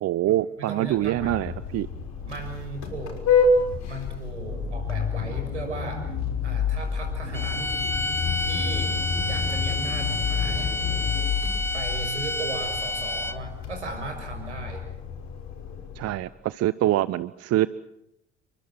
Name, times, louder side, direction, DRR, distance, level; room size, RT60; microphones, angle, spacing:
voice 1, 0.0-1.9 16.0-17.7, right 14 dB, 45° right, 18 dB, 0.9 m, -25 dB
voice 2, 0.6-1.4 2.2-3.2 3.9-6.1 6.4-7.8 8.4-9.0 9.2-10.7 11.7-14.8, right 3 dB, 85° right, 5 dB, 6.4 m, -36 dB
Vehicle horn car horn honking, 0.9-16.3, left 5 dB, 55° left, 6.0 m, -29 dB
sound 1, 7.3-13.6, left 1 dB, 5° left, 1.2 m, -29 dB
sound 2, 7.9-11.3, left 4 dB, 25° left, 6.3 m, -37 dB
30.0 x 23.5 x 6.1 m, 0.80 s
figure-of-eight pair, 55°, 34 cm